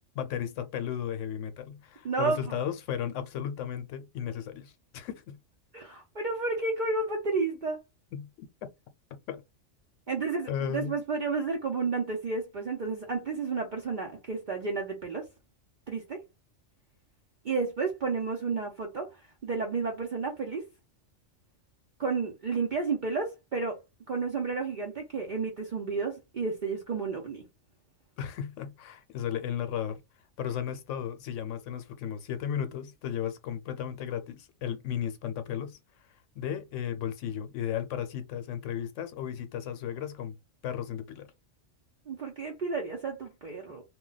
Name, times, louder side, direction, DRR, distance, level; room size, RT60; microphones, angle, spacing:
voice 1, 0.1-5.4 8.1-8.3 9.3-9.4 10.5-11.0 28.2-30.0 30.4-35.8 36.3-40.4 40.6-41.3, left 9 dB, 80° left, 0.9 m, -34 dB
voice 2, 2.0-2.4 5.7-7.8 10.1-15.3 15.9-16.2 17.4-19.1 19.4-20.6 22.0-23.8 24.1-27.4 42.1-43.8, right 4 dB, 50° right, 0.6 m, -31 dB
2.3 x 2.2 x 3.8 m
omnidirectional pair, 1.3 m